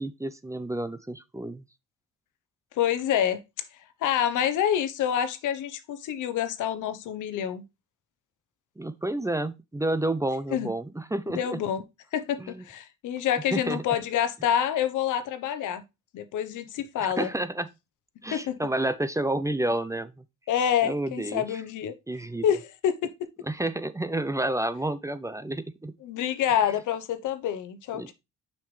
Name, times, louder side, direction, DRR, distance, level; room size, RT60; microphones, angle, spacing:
voice 1, 0.0-1.6 8.8-11.6 12.4-12.6 13.5-13.8 17.2-17.7 18.2-20.2 20.8-21.6 22.1-22.4 23.4-25.9 27.9-28.1, right 1 dB, 10° right, 0.6 m, -30 dB
voice 2, 2.8-3.4 4.0-7.6 10.5-10.7 11.3-11.8 12.1-15.8 16.1-17.3 18.3-18.6 20.5-21.9 22.4-23.3 26.0-28.1, left 9 dB, 80° left, 1.0 m, -27 dB
6.2 x 5.6 x 3.3 m
cardioid pair, 90°, 30 cm